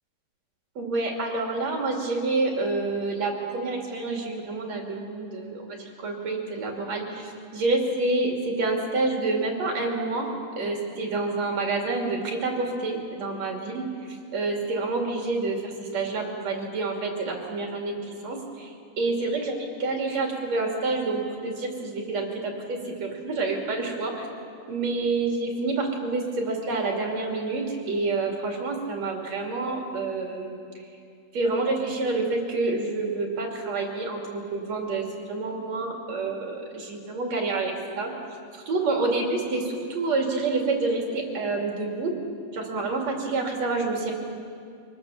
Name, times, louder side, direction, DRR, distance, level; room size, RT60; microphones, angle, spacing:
voice 1, 0.8-10.3 10.6-13.9 14.3-24.3 24.7-30.6 31.3-38.1 38.5-42.1 42.5-44.1, right 3 dB, 50° right, 1 dB, 3.5 m, -28 dB
25.5 x 19.0 x 7.2 m, 2.4 s
omnidirectional pair, 4.3 m